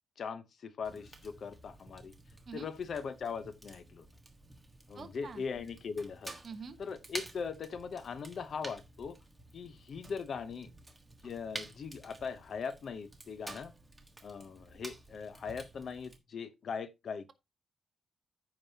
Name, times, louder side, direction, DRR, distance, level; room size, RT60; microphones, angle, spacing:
voice 1, 0.2-2.1 2.5-4.1 4.9-6.4 6.8-9.2 9.5-10.7 11.2-13.7 14.2-17.3, left 6 dB, 50° left, 0.8 m, -40 dB
Fire, 0.8-16.2, right 2 dB, 10° right, 1.4 m, -50 dB
voice 2, 4.9-5.4 6.4-6.8, right 5 dB, 35° right, 1.2 m, -45 dB
14.5 x 5.2 x 2.8 m
wide cardioid pair, 170°, 0 cm